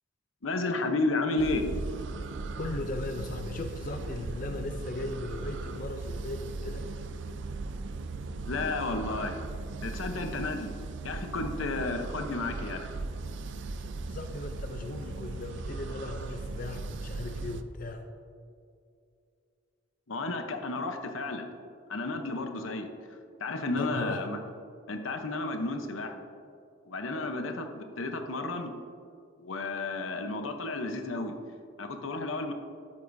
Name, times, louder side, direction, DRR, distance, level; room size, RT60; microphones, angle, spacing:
voice 1, 0.4-1.6 8.4-9.4 9.8-10.7 11.0-12.9 20.1-21.5 21.9-22.9 23.4-24.4 24.9-26.1 26.9-28.7 29.4-31.3 31.8-32.5, left 2 dB, 85° left, 5 dB, 0.9 m, -32 dB
sound 1, 1.4-17.6, right 3 dB, 65° right, 0.4 m, -38 dB
voice 2, 2.6-6.9 14.1-18.1 23.8-24.2, left 2 dB, 45° left, 5 dB, 0.5 m, -37 dB
12.5 x 8.5 x 2.7 m, 2.4 s
head